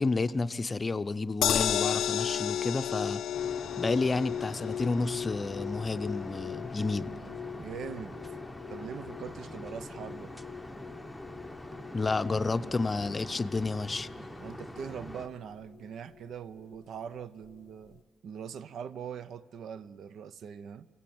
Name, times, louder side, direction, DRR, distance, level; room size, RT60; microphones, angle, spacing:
voice 1, 0.0-3.2 3.8-7.1 11.9-14.1, left 3 dB, 25° left, 0.6 m, -30 dB
sound 1, 1.4-13.6 14.0-14.1 14.4-14.5, left 10 dB, 75° left, 0.4 m, -35 dB
sound 2, 3.3-15.3, left 1 dB, ahead, 0.9 m, -44 dB
voice 2, 7.5-8.4 8.7-10.4 14.4-20.9, right 7 dB, 65° right, 0.5 m, -42 dB
22.5 x 17.0 x 8.6 m
cardioid pair, 90°, 0 cm